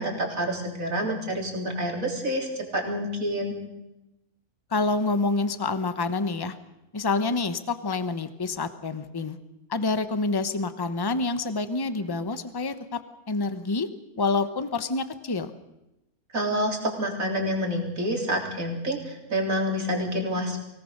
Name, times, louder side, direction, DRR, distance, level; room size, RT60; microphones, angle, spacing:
voice 1, 0.0-3.5 16.3-20.6, equal, 65° right, 0 dB, 4.1 m, -28 dB
voice 2, 4.7-6.6 6.9-9.4 9.7-13.0 13.3-13.9 14.2-15.5, left 3 dB, 20° left, 10 dB, 0.9 m, -27 dB
24.0 x 18.0 x 6.7 m, 0.93 s
omnidirectional pair, 1.6 m